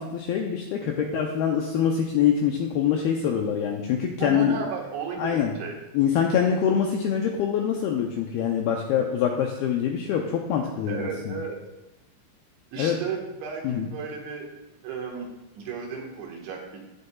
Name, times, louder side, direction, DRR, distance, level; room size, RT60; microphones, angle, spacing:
voice 1, 0.0-4.6 5.2-5.5 5.9-11.4 12.8-13.0 13.6-13.9, left 8 dB, 85° left, 2 dB, 2.2 m, -24 dB
voice 2, 0.8-1.2 4.2-5.7 10.9-11.6 12.7-14.5 14.8-16.8, right 5 dB, 80° right, -1 dB, 3.9 m, -34 dB
16.5 x 6.7 x 2.4 m, 0.95 s
omnidirectional pair, 5.2 m